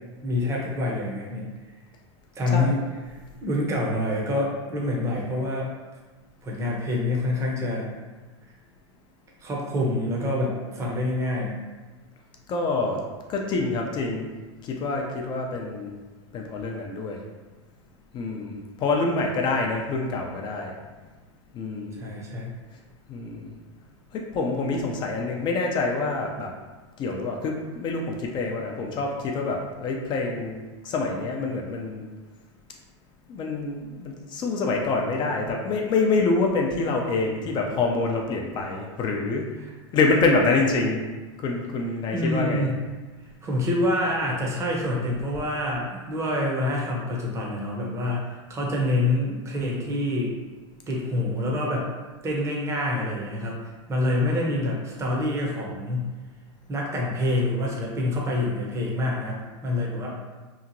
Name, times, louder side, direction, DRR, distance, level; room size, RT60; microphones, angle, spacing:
voice 1, 0.2-1.5 2.4-2.8 3.1-5.7 6.4-7.9 9.4-11.6 22.0-22.5 39.6-39.7 42.1-42.8 43.4-50.3 50.9-51.9 52.2-56.1 56.7-60.1, left 1 dB, 20° right, -2 dB, 0.6 m, -26 dB
voice 2, 12.5-13.0 13.3-14.3 14.6-15.9 16.3-17.2 18.1-20.7 21.5-22.1 23.1-23.5 24.1-26.5 27.0-32.0 33.3-39.5 39.9-41.0 41.4-42.6, left 3 dB, 30° left, 1 dB, 0.4 m, -26 dB
2.9 x 2.4 x 2.6 m, 1.3 s
hypercardioid pair, 110°, 15 cm